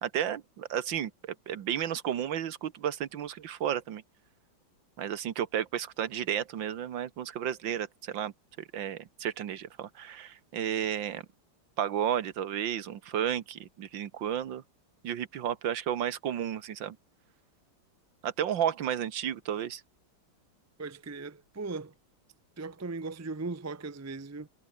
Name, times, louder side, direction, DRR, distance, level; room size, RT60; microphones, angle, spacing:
voice 1, 0.0-1.1 1.5-4.0 5.0-8.3 8.6-11.2 11.8-14.6 15.0-17.0 18.2-19.8, right 10 dB, 70° right, 1.9 m, -32 dB
voice 2, 20.8-21.9 22.6-24.5, right 3 dB, 25° right, 0.3 m, -38 dB
omnidirectional pair, 2.1 m